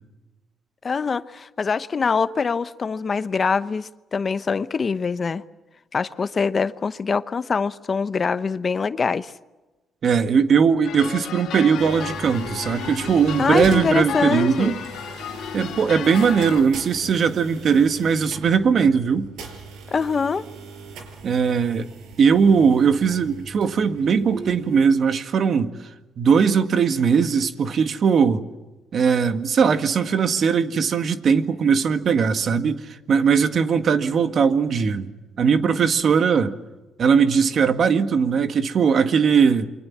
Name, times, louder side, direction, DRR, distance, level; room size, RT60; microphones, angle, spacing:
voice 1, 0.8-5.4 5.9-9.3 13.4-14.8 19.9-20.4, left 5 dB, 40° left, 0.9 m, -24 dB
voice 2, 10.0-14.7 15.5-19.3 21.2-21.9 22.2-25.7 26.2-28.4 28.9-35.1 35.4-36.5 37.0-39.7, right 6 dB, 55° right, 1.8 m, -19 dB
sound 1, 10.8-16.6, left 9 dB, 75° left, 2.0 m, -33 dB
sound 2, 11.8-24.9, right 4 dB, 85° right, 5.5 m, -39 dB
28.5 x 24.0 x 7.4 m
cardioid pair, 90°, 0 cm